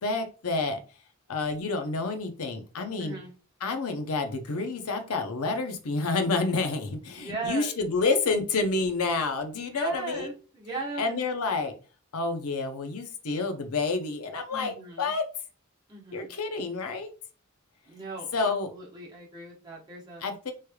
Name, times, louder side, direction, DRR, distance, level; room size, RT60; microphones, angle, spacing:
voice 1, 0.0-0.8 1.3-3.2 3.6-10.3 11.0-11.7 12.1-15.2 16.1-17.1 18.3-18.7 20.2-20.5, left 3 dB, 80° left, 6 dB, 0.6 m, -29 dB
voice 2, 3.0-3.3 7.1-7.7 9.7-11.2 14.5-15.1 15.9-16.3 17.9-20.3, right 3 dB, 20° right, -3 dB, 1.0 m, -38 dB
3.2 x 3.1 x 2.2 m, 0.36 s
head